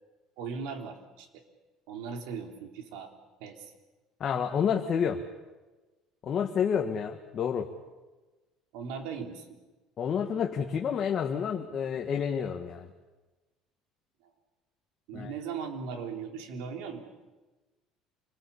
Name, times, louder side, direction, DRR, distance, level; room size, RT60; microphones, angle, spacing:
voice 1, 0.4-1.3 1.9-3.1 3.4-3.7 8.7-9.6 15.1-17.1, right 5 dB, 85° right, 4 dB, 3.7 m, -38 dB
voice 2, 4.2-5.2 6.2-7.7 10.0-12.9 15.1-15.3, left 7 dB, 35° left, 3 dB, 1.7 m, -29 dB
27.5 x 20.5 x 8.6 m, 1.2 s
cardioid pair, 145°, 0 cm